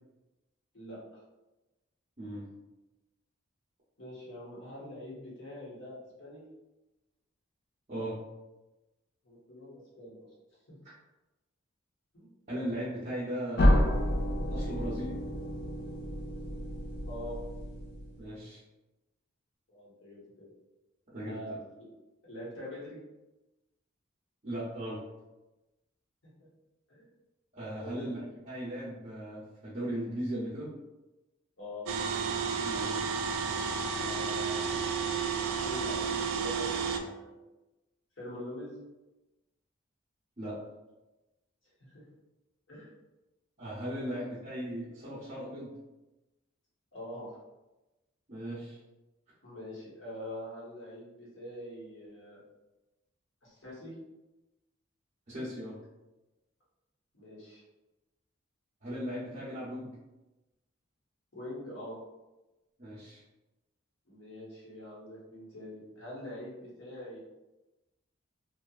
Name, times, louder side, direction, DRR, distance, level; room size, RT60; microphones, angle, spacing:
voice 1, 4.0-6.4 9.2-10.3 10.7-10.8 12.1-12.3 17.1-17.4 19.7-20.5 21.2-21.5 21.8-21.9 22.2-23.0 26.9-27.1 27.8-28.1 31.6-31.9 33.4-33.7 34.0-34.5 35.5-37.3 38.2-38.8 41.8-42.0 42.7-42.9 46.9-47.4 48.5-48.6 49.4-52.4 53.4-53.9 57.1-57.6 61.3-62.0 64.1-67.2, left 1 dB, 65° left, -7 dB, 1.1 m, -44 dB
voice 2, 12.5-13.7 14.5-15.2 18.2-18.6 21.1-21.4 24.4-25.0 27.5-28.2 28.4-30.8 32.6-33.1 40.4-40.6 43.6-45.8 48.3-48.8 55.3-55.8 58.8-59.9 62.8-63.2, equal, 35° right, -11 dB, 0.6 m, -37 dB
sound 1, 13.6-18.3, left 1 dB, 50° left, 0.3 m, -29 dB
sound 2, 31.9-37.0, right 6 dB, 85° right, 0.3 m, -32 dB
2.7 x 2.3 x 2.3 m, 1.0 s
head